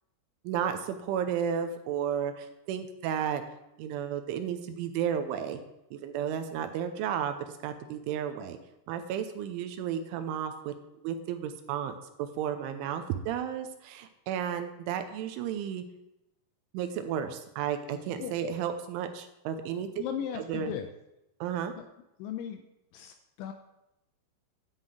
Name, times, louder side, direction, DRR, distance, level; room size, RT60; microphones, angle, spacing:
voice 1, 0.4-3.4 3.8-5.6 5.9-8.6 8.9-10.7 11.0-15.8 16.7-20.0 20.3-20.7 21.4-21.7, right 8 dB, 80° right, 8 dB, 3.0 m, -33 dB
voice 2, 20.0-20.9 21.8-21.9 22.2-22.6 22.9-23.5, left 9 dB, 85° left, 6 dB, 2.7 m, -36 dB
10.0 x 5.7 x 7.7 m, 0.90 s
omnidirectional pair, 5.8 m